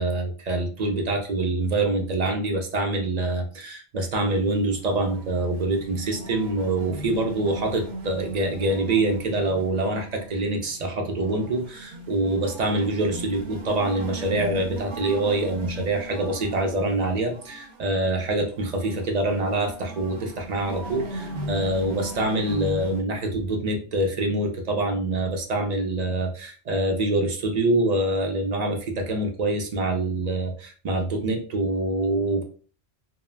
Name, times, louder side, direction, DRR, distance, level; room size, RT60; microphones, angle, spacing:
voice 1, 0.0-32.4, right 2 dB, 50° right, 4 dB, 0.6 m, -25 dB
sound 1, 4.2-23.0, right 1 dB, 90° right, 0.9 m, -38 dB
2.3 x 2.1 x 3.2 m, 0.40 s
omnidirectional pair, 1.1 m